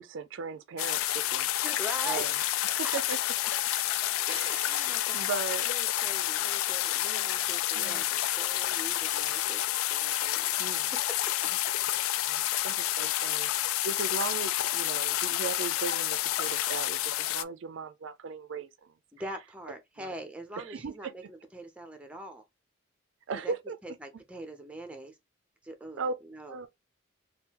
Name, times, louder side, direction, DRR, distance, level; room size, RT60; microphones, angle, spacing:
voice 1, 0.0-1.5 2.0-2.3 2.6-3.2 4.3-5.7 7.7-8.0 10.6-10.9 11.5-11.6 12.2-18.9 20.0-20.1 20.6-21.1 23.3-23.8 26.0-26.1 26.5-26.7, right 5 dB, 70° right, 0.4 m, -38 dB
sound 1, 0.8-17.4, left 14 dB, 85° left, 0.3 m, -29 dB
voice 2, 1.6-3.0 3.4-3.8 4.3-5.3 5.7-9.6 9.9-10.5 19.2-22.4 23.4-23.5 23.8-25.2 25.6-26.7, right 1 dB, 5° right, 0.5 m, -43 dB
3.7 x 2.3 x 2.8 m
head